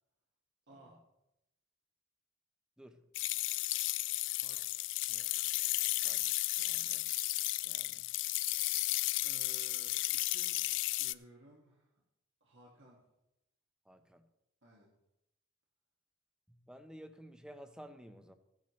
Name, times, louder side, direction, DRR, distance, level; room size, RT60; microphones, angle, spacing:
voice 1, 0.7-1.0 4.3-5.3 6.7-7.0 9.2-10.6 11.0-12.0 12.4-13.0 14.6-14.9, right 1 dB, 60° right, -3 dB, 1.8 m, -59 dB
voice 2, 2.8-3.1 6.0-7.1 7.6-8.1 13.8-14.3 16.5-18.3, equal, 5° right, 8 dB, 0.6 m, -54 dB
sound 1, 3.1-11.1, left 18 dB, 60° left, 0.3 m, -34 dB
15.5 x 10.5 x 3.1 m, 0.89 s
head